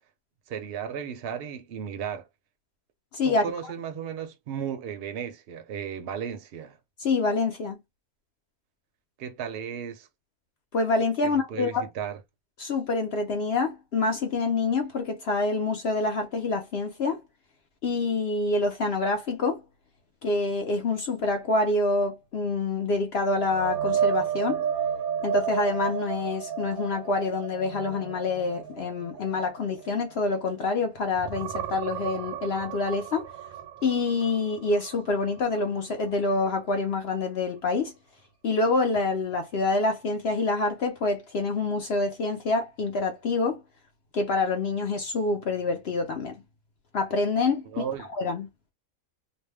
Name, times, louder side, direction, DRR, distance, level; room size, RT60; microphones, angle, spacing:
voice 1, 0.5-2.3 3.2-6.8 9.2-10.1 11.2-12.2 47.6-48.1, right 8 dB, 55° right, 0.7 m, -35 dB
voice 2, 3.1-3.4 7.0-7.8 10.7-11.8 12.6-17.2 17.8-19.6 20.2-24.6 25.2-33.3 33.8-37.9 38.4-43.6 44.1-46.3 46.9-47.8 48.1-48.5, left 3 dB, 60° left, 0.7 m, -26 dB
sound 1, 23.4-30.8 31.1-35.0 35.4-35.6 39.0-39.1, right 8 dB, 85° right, 1.1 m, -32 dB
2.6 x 2.2 x 3.3 m
omnidirectional pair, 1.5 m